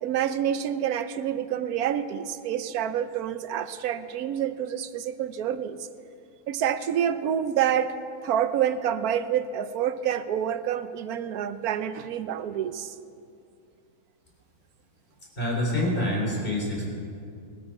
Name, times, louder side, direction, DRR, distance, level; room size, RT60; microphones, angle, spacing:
voice 1, 0.0-5.9 6.5-7.9 8.2-12.9, right 9 dB, 75° right, 12 dB, 1.1 m, -27 dB
voice 2, 15.4-16.9, left 1 dB, 35° left, -2 dB, 3.8 m, -26 dB
20.5 x 12.5 x 4.8 m, 2.4 s
omnidirectional pair, 1.6 m